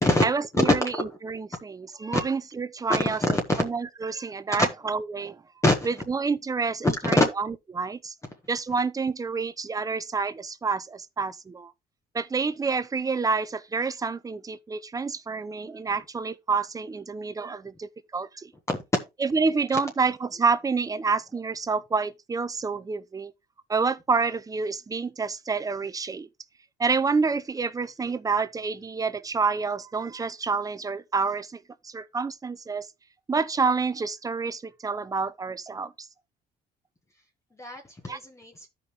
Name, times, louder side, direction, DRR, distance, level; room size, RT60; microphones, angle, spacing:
voice 1, 0.2-3.2 3.6-5.4 5.8-8.1 8.5-11.7 12.1-18.5 19.2-23.3 23.7-26.3 26.8-32.9 33.3-36.1 38.1-38.2, right 4 dB, 20° right, 0.6 m, -28 dB
voice 2, 3.0-3.6 5.6-5.9 6.8-7.2 37.6-38.7, left 2 dB, 15° left, 1.2 m, -23 dB
13.0 x 5.3 x 2.9 m
cardioid pair, 110°, 17 cm